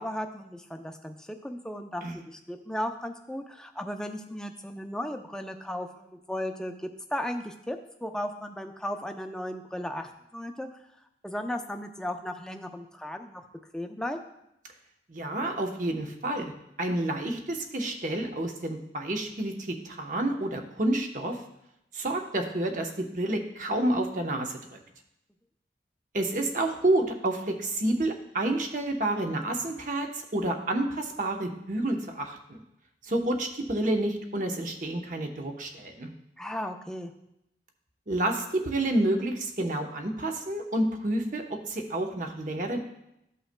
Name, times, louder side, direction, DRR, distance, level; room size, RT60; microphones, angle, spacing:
voice 1, 0.0-10.7 11.2-13.4 13.7-14.2 36.4-37.1, left 1 dB, 5° left, 4 dB, 0.5 m, -35 dB
voice 2, 15.1-16.5 16.8-21.4 21.9-24.8 26.1-32.6 33.0-36.1 38.1-42.8, right 1 dB, 45° right, 3 dB, 0.9 m, -29 dB
14.0 x 5.5 x 2.2 m, 0.83 s
head